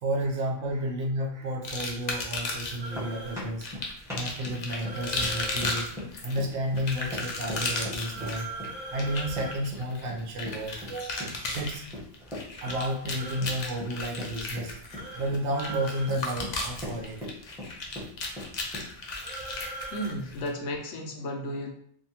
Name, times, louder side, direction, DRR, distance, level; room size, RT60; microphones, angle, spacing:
voice 1, 0.0-5.9 6.2-8.5 8.9-11.8 12.6-14.8 15.2-17.3, right 1 dB, 70° right, 1 dB, 0.9 m, -32 dB
sound 1, 1.6-2.9 3.6-20.5, left 2 dB, 55° left, 0.4 m, -35 dB
sound 2, 2.6-19.1, left 1 dB, 5° right, 0.7 m, -41 dB
sound 3, 2.7-3.4 4.8-5.8 8.0-9.6 12.6-13.5 14.9-15.2 15.5-16.1 19.2-20.1, right 2 dB, 45° right, 0.6 m, -40 dB
voice 2, 19.1-19.6 19.9-21.7, equal, 75° left, 2 dB, 0.9 m, -34 dB
2.6 x 2.3 x 2.7 m, 0.65 s
omnidirectional pair, 1.2 m